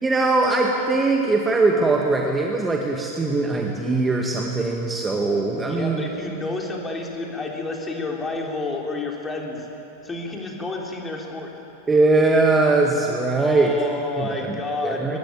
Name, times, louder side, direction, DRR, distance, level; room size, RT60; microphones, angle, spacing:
voice 1, 0.0-6.1 11.9-13.7 14.2-14.6 14.8-15.2, right 3 dB, 15° right, 1 dB, 1.9 m, -21 dB
voice 2, 5.7-9.7 10.0-11.5 13.4-15.2, left 3 dB, 15° left, 0 dB, 3.8 m, -30 dB
22.0 x 20.5 x 8.9 m, 2.9 s
figure-of-eight pair, 90°, 0 cm